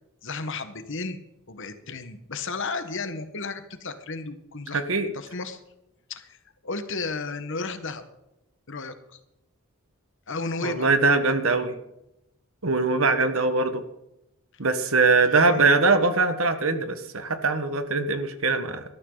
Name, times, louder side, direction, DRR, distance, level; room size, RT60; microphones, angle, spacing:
voice 1, 0.2-1.2 1.5-4.8 5.1-5.6 6.1-8.0 8.7-9.2 10.3-10.9 15.3-15.7, left 3 dB, 60° left, 9 dB, 1.6 m, -33 dB
voice 2, 4.7-5.1 10.6-11.8 12.6-13.8 14.6-18.8, right 3 dB, 70° right, 9 dB, 1.6 m, -22 dB
18.5 x 13.0 x 4.0 m, 0.87 s
head